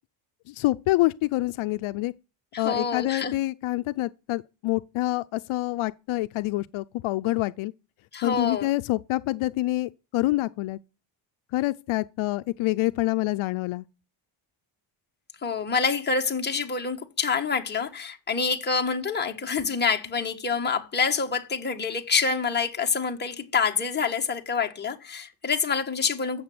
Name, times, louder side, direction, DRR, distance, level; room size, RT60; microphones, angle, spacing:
voice 1, 0.5-2.1 2.6-7.7 8.2-10.8 11.5-13.8, left 18 dB, 75° left, 0.6 m, -26 dB
voice 2, 2.5-3.4 8.1-8.7 15.4-26.4, left 5 dB, 20° left, 1.5 m, -27 dB
15.0 x 6.8 x 7.9 m
cardioid pair, 160°, 50 cm